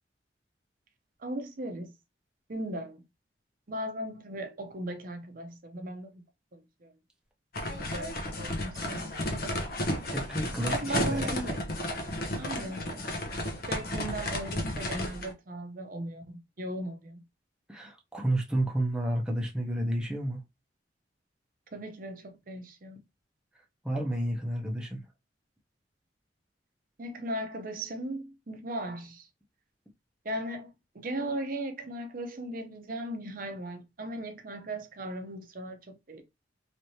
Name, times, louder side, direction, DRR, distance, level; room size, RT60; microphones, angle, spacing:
voice 1, 1.2-1.9 2.5-3.0 3.7-6.2 6.5-6.9 7.7-9.1 9.6-9.7 10.7-11.6 12.4-12.8 13.3-17.2 21.7-23.0 27.0-29.3 30.2-36.2, right 1 dB, 50° right, 0.7 m, -37 dB
sound 1, 7.5-15.3, left 1 dB, 55° left, 0.8 m, -33 dB
voice 2, 10.1-11.3 17.7-20.4 23.8-25.0, right 1 dB, 5° right, 0.7 m, -31 dB
3.3 x 3.1 x 2.7 m
head